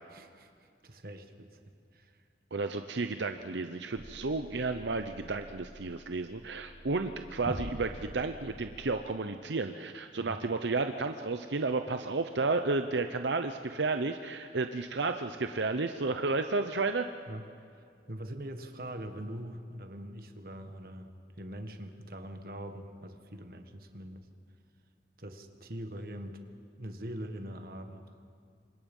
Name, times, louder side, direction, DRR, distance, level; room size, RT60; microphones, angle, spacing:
voice 1, 0.1-2.1 10.2-10.4 17.3-17.5 18.1-21.1 21.4-24.2 25.2-26.4 26.8-28.0, right 1 dB, 55° right, 7 dB, 1.7 m, -43 dB
voice 2, 2.5-17.1, right 3 dB, 85° right, 7 dB, 0.8 m, -32 dB
sound 1, 3.9-9.0, equal, 30° right, 1.4 m, -46 dB
28.0 x 25.5 x 5.5 m, 2.4 s
head